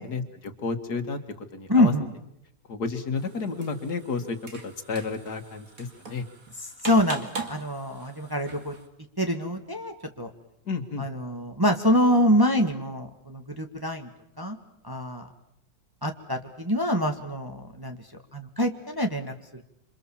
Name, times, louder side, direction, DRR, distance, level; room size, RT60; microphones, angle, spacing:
voice 1, 0.1-1.9 2.7-4.4 4.6-6.2 10.7-11.0, left 4 dB, 60° left, 7 dB, 2.3 m, -31 dB
voice 2, 1.7-2.1 6.8-8.7 9.2-10.3 11.0-14.1 14.4-14.6 14.8-15.3 16.0-18.0 18.3-19.6, equal, 15° right, 4 dB, 1.7 m, -25 dB
sound 1, 3.2-8.9, right 4 dB, 50° right, 2.8 m, -41 dB
27.0 x 27.0 x 7.2 m, 0.78 s
omnidirectional pair, 1.9 m